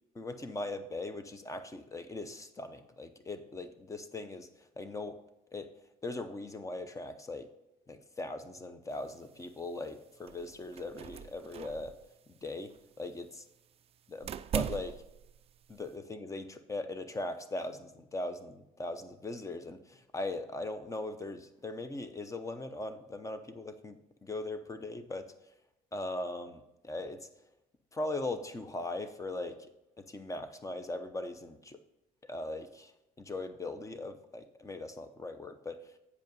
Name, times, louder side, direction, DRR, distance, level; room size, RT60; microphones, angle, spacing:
voice 1, 0.2-5.2 5.5-5.7 6.0-7.5 7.9-12.0 12.3-13.3 14.1-15.0 15.7-25.3 25.9-27.3 27.9-29.6 30.0-31.8 32.2-32.9 33.2-35.9, left 2 dB, 20° left, 10 dB, 0.8 m, -40 dB
sound 1, 8.9-15.9, right 9 dB, 35° right, 0.3 m, -42 dB
8.3 x 5.2 x 5.3 m, 0.90 s
cardioid pair, 110°, 17 cm